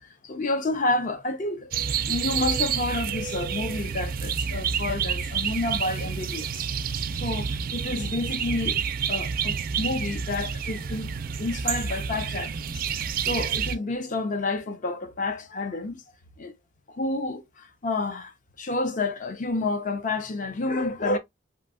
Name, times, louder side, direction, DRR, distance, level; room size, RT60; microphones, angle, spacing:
voice 1, 0.2-1.7 2.1-6.5 7.2-8.8 9.1-11.1 11.4-16.0 16.4-16.5 16.9-18.3 18.6-21.2, left 2 dB, 40° left, 0.6 m, -29 dB
sound 1, 1.7-13.7, right 7 dB, 50° right, 0.4 m, -29 dB
3.0 x 2.6 x 2.4 m
head